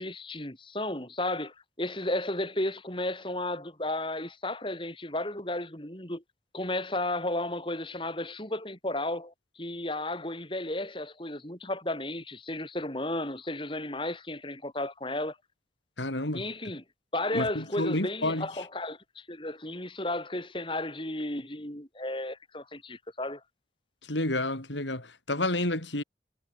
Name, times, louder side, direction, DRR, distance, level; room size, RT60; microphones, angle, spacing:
voice 1, 0.0-6.2 6.5-15.4 16.3-16.8 17.1-23.4, left 1 dB, 30° left, 5.8 m, -33 dB
voice 2, 16.0-16.4 17.3-18.5 24.1-26.0, left 1 dB, 85° left, 5.9 m, -30 dB
head